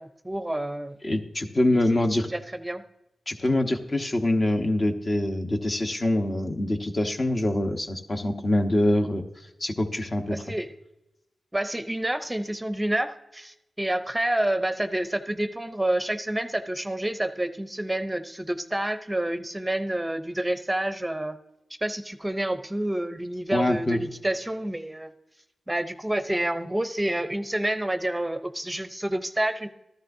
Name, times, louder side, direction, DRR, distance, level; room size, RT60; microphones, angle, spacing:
voice 1, 0.0-1.0 1.9-2.0 2.3-2.8 10.3-10.7 11.5-21.4 21.8-25.1 25.7-29.7, right 1 dB, 15° right, 10 dB, 0.6 m, -28 dB
voice 2, 1.0-2.3 3.3-9.2 9.6-10.4 23.5-24.0, left 1 dB, 45° left, 4 dB, 1.0 m, -24 dB
13.0 x 11.0 x 2.7 m, 0.92 s
cardioid pair, 40°, 0 cm